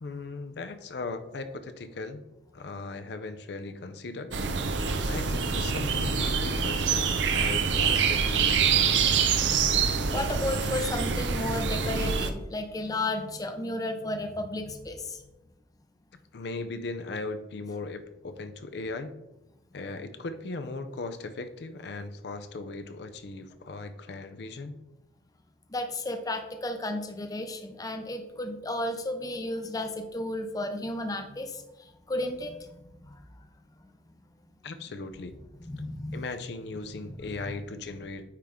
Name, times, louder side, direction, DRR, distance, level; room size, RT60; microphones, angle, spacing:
voice 1, 0.0-2.2 2.5-4.3 5.1-9.1 16.3-19.1 19.7-24.8 34.6-35.3 36.1-38.2, left 3 dB, 65° left, 8 dB, 0.5 m, -38 dB
sound 1, 4.3-12.3, right 6 dB, 85° right, 0.6 m, -26 dB
voice 2, 10.1-15.2 25.7-31.6 32.1-32.6 35.6-36.2 37.0-37.1, left 1 dB, 20° left, 6 dB, 0.6 m, -33 dB
9.1 x 3.6 x 3.5 m, 0.94 s
head